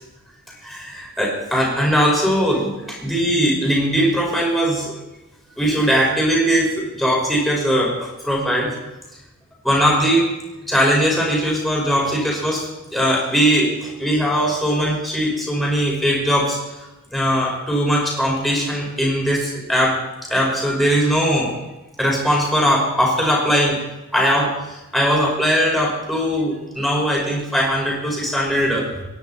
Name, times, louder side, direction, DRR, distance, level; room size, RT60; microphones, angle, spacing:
voice 1, 0.6-4.9 5.6-8.7 9.6-10.2 10.6-16.6 17.1-20.0 20.3-21.5 22.0-23.8 24.1-28.9, equal, ahead, -3 dB, 5.4 m, -20 dB
25.5 x 11.0 x 4.3 m, 1.0 s
head